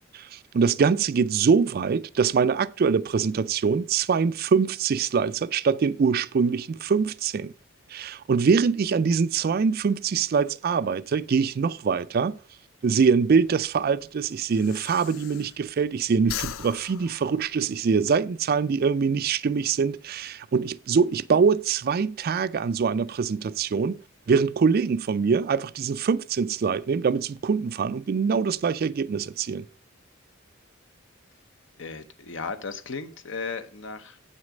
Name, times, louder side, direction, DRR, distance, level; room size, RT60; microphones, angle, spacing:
voice 1, 0.1-7.5 7.9-12.3 12.8-24.0 24.3-29.7, right 5 dB, 50° right, 0.4 m, -24 dB
Breathing, 13.2-15.9 16.2-18.1, left 11 dB, 85° left, 0.4 m, -39 dB
voice 2, 31.8-34.2, left 4 dB, 65° left, 0.9 m, -35 dB
8.1 x 6.4 x 5.1 m
head